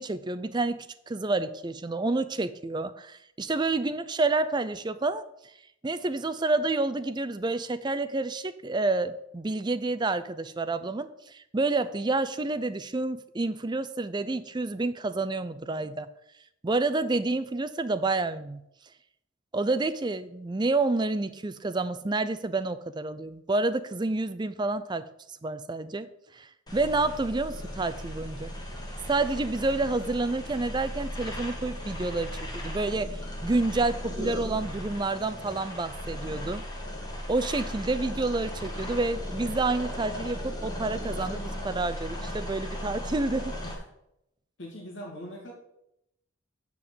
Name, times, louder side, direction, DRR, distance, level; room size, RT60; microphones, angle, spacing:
voice 1, 0.0-5.3 5.8-16.1 16.6-18.6 19.5-25.1 25.4-28.5 29.1-36.6 37.3-43.5, right 3 dB, 20° right, 13 dB, 0.4 m, -29 dB
sound 1, 26.7-43.7, equal, 20° left, 2.0 m, -36 dB
voice 2, 44.6-45.5, equal, 65° left, -1 dB, 2.1 m, -41 dB
6.9 x 6.1 x 7.6 m, 0.80 s
head